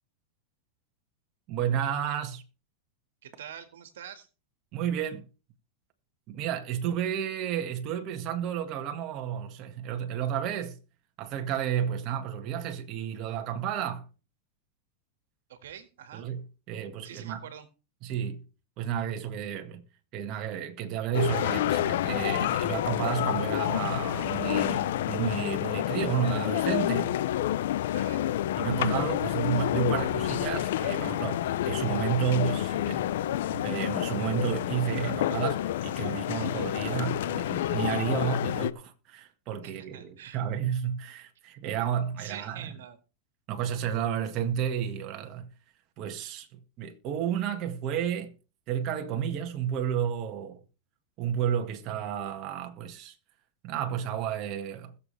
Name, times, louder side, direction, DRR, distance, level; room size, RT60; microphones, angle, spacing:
voice 1, 1.5-2.4 4.7-5.3 6.3-10.8 11.2-14.1 16.1-17.4 18.0-18.4 18.8-19.8 20.1-27.2 28.6-33.1 33.5-42.7 43.5-45.5 46.0-48.3 48.7-50.6 51.2-53.2 53.6-55.0, right 9 dB, 40° right, 1.8 m, -31 dB
voice 2, 3.2-4.3 15.5-16.2 17.0-17.7 27.9-28.2 39.6-40.4 42.2-43.0, right 9 dB, 85° right, 1.8 m, -45 dB
sound 1, 21.1-38.7, left 12 dB, 75° left, 0.6 m, -29 dB
21.0 x 7.2 x 3.4 m
supercardioid pair, 140°, 0 cm